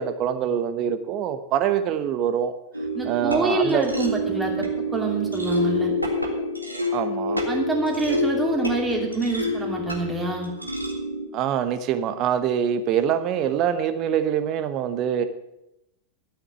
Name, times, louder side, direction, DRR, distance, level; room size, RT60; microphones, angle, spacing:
voice 1, 0.0-2.5 3.0-3.8 6.9-7.4 11.3-15.3, right 9 dB, 35° right, 10 dB, 1.1 m, -24 dB
sound 1, 2.7-11.3, left 1 dB, 90° right, 1.8 m, -27 dB
voice 2, 2.9-4.6 4.9-5.9 7.5-10.5, right 2 dB, 10° right, 0 dB, 2.8 m, -26 dB
12.5 x 6.5 x 8.2 m, 0.86 s
figure-of-eight pair, 90°, 0 cm